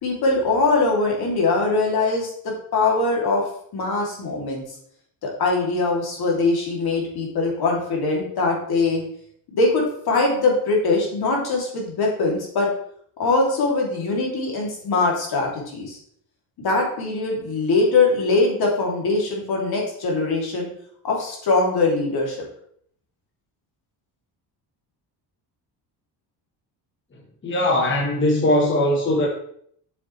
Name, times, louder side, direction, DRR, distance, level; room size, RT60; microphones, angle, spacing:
voice 1, 0.0-3.4 3.7-4.6 5.2-9.0 9.5-12.7 13.2-16.0 16.6-20.7 21.0-22.4, left 3 dB, 60° left, -2 dB, 2.8 m, -22 dB
voice 2, 27.4-29.3, left 1 dB, 25° left, -2 dB, 1.2 m, -20 dB
7.7 x 7.1 x 3.2 m, 0.65 s
cardioid pair, 160°, 43 cm